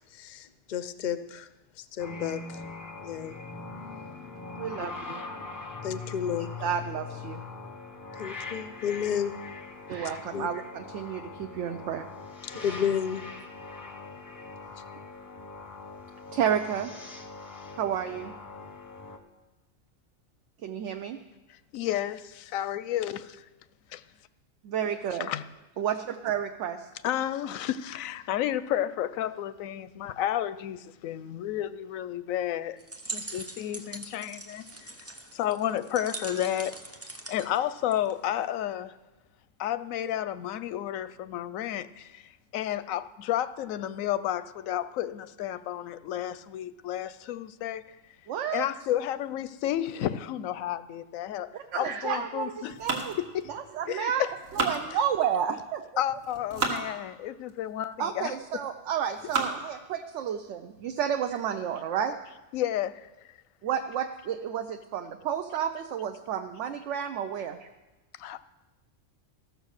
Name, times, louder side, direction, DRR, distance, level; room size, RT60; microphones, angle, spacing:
voice 1, 0.1-1.5 1.8-2.6 3.0-3.4 5.8-6.5 8.2-9.3 10.3-10.5 12.4-13.2, left 8 dB, 55° left, 0.5 m, -31 dB
sound 1, 2.0-19.2, left 4 dB, 20° left, 0.8 m, -42 dB
voice 2, 4.6-5.2 6.6-7.4 9.9-12.1 16.3-16.9 17.7-18.3 20.6-21.2 24.6-25.3 25.8-26.9 48.3-48.6 51.5-53.1 53.5-54.2 54.6-55.8 58.0-62.2 63.6-67.7, right 8 dB, 70° right, 0.9 m, -31 dB
voice 3, 21.5-23.5 23.9-24.0 25.2-25.4 27.0-32.8 33.1-35.0 35.3-36.8 37.3-39.0 39.6-48.0 48.5-52.8 53.2-53.5 53.9-54.3 54.9-55.0 56.0-58.3 62.5-63.1 68.2-68.4, left 11 dB, 90° left, 1.0 m, -31 dB
sound 2, 32.8-38.4, right 3 dB, 20° right, 0.4 m, -42 dB
sound 3, 52.7-53.9 54.3-55.4 56.1-56.8 57.5-57.6 58.3-58.7 59.1-59.7 60.3-60.4 60.8-60.9 61.3-61.6, right 3 dB, 90° right, 1.9 m, -33 dB
14.5 x 6.5 x 6.4 m
omnidirectional pair, 1.4 m